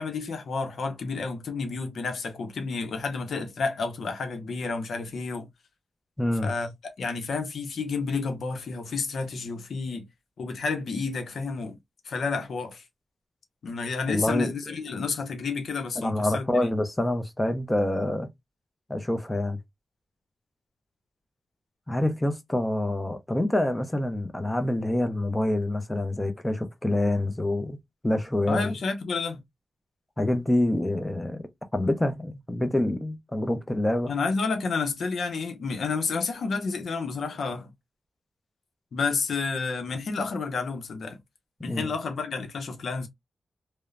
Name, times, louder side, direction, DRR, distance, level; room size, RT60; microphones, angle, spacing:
voice 1, 0.0-5.5 6.4-10.1 10.4-11.8 12.0-12.8 13.6-16.7 28.5-29.4 34.1-37.7 38.9-41.2 41.6-43.1, left 4 dB, 80° left, 0.7 m, -30 dB
voice 2, 6.2-6.5 14.1-14.5 16.0-18.3 18.9-19.6 21.9-27.8 28.0-28.8 30.2-31.4 31.7-34.1 41.7-41.9, left 1 dB, 15° left, 0.6 m, -26 dB
2.9 x 2.1 x 2.4 m
cardioid pair, 70°, 0 cm